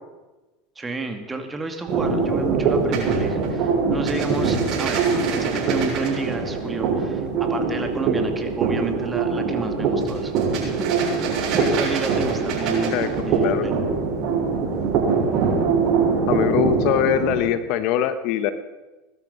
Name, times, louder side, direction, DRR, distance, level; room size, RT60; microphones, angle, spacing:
voice 1, 0.8-5.0 5.4-10.4 10.6-11.0 11.5-13.7, right 3 dB, 15° right, 5 dB, 2.4 m, -31 dB
sound 1, 1.9-17.4, right 5 dB, 50° right, 7.0 m, -23 dB
voice 2, 16.3-18.5, left 11 dB, 60° left, 12 dB, 1.2 m, -22 dB
20.0 x 12.5 x 5.6 m, 1.1 s
supercardioid pair, 110°, 0 cm